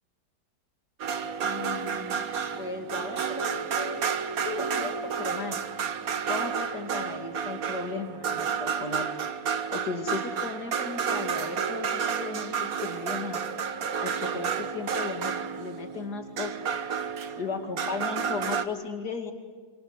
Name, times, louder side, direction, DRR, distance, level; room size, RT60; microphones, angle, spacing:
sound 1, 1.0-18.6, right 6 dB, 60° right, 1.5 m, -31 dB
voice 1, 1.4-2.2 2.5-4.0 4.4-5.6 6.3-9.1 9.7-13.5 14.0-16.5 17.4-19.3, left 5 dB, 70° left, 4 dB, 3.1 m, -36 dB
28.0 x 25.5 x 8.0 m, 1.5 s
omnidirectional pair, 1.8 m